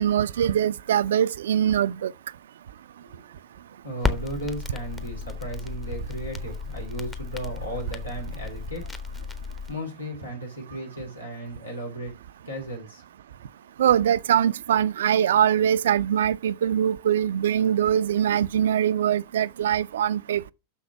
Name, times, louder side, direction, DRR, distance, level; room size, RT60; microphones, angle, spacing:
voice 1, 0.0-2.1 13.8-20.5, right 9 dB, 60° right, 0.4 m, -22 dB
voice 2, 3.0-3.4 3.8-8.8 9.7-12.1 12.4-13.0, right 1 dB, 80° left, 2.8 m, -35 dB
Crackle, 4.0-9.7, left 4 dB, 10° left, 0.9 m, -33 dB
6.3 x 5.9 x 5.6 m
figure-of-eight pair, 90°, 0 cm